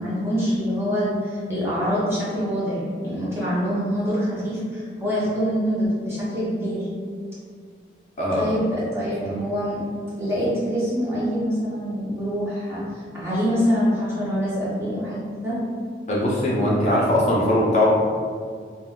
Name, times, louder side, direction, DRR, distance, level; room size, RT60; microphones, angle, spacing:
voice 1, 0.0-6.9 8.3-9.8 10.2-15.6, equal, 15° right, -9 dB, 0.7 m, -25 dB
voice 2, 16.1-17.9, left 1 dB, 40° left, -6 dB, 0.4 m, -20 dB
2.4 x 2.2 x 3.5 m, 2.1 s
head